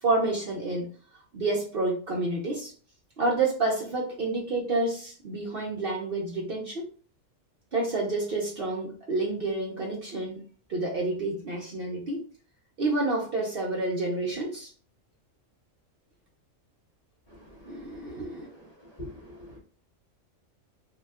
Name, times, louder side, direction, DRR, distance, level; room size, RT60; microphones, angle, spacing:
voice 1, 0.0-0.9 1.3-2.7 3.2-6.8 7.7-10.4 10.7-12.2 12.8-14.7 17.6-18.5, right 2 dB, 50° right, -3 dB, 0.8 m, -29 dB
voice 2, 17.3-18.7 18.9-19.6, left 1 dB, 30° left, -5 dB, 1.4 m, -46 dB
2.8 x 2.2 x 3.4 m, 0.40 s
omnidirectional pair, 1.4 m